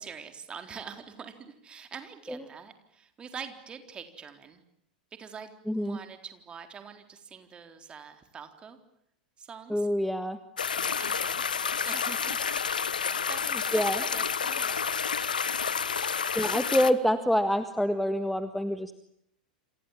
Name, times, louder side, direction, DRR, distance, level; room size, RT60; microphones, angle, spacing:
voice 1, 0.0-4.6 5.2-8.8 9.4-9.9 10.8-11.4 11.7-12.4 13.0-15.4 15.7-16.1, right 6 dB, 20° right, 7 dB, 4.0 m, -45 dB
voice 2, 5.7-6.0 9.7-10.4 13.7-14.0 16.3-18.9, equal, ahead, 10 dB, 1.7 m, -26 dB
sound 1, 10.6-16.9, left 6 dB, 75° left, 1.3 m, -29 dB
29.0 x 27.0 x 7.5 m, 0.76 s
figure-of-eight pair, 90°, 5 cm